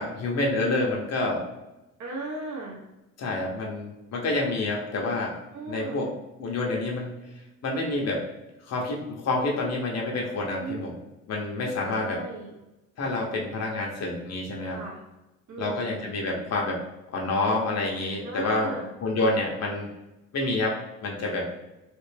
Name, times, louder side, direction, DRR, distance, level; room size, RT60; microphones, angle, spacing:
voice 1, 0.0-1.5 3.2-5.4 5.7-6.1 6.4-7.1 7.6-8.2 8.7-10.9 11.3-12.2 13.0-14.8 15.6-16.8 17.1-19.9 20.3-21.5, left 2 dB, 55° left, -1 dB, 0.9 m, -28 dB
voice 2, 2.0-2.8 5.5-6.1 10.5-10.8 11.9-12.5 14.7-15.0 15.5-16.0 18.2-18.9, right 3 dB, 70° right, -5 dB, 1.4 m, -36 dB
3.3 x 2.4 x 3.4 m, 1.0 s
cardioid pair, 90°, 30 cm